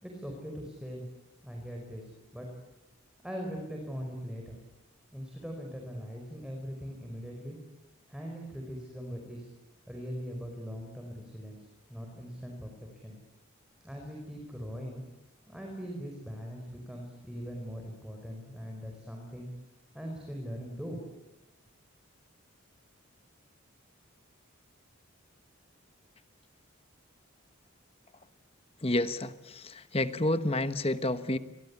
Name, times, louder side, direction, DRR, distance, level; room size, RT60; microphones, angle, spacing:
voice 1, 0.0-1.1 1.4-2.1 2.3-2.5 3.2-4.6 5.1-7.6 8.1-9.5 9.9-13.2 13.8-15.0 15.5-19.5 19.9-21.0, equal, 5° right, 1 dB, 5.2 m, -41 dB
voice 2, 28.8-31.4, left 1 dB, 25° left, 11 dB, 1.2 m, -29 dB
29.5 x 23.5 x 8.6 m, 0.97 s
head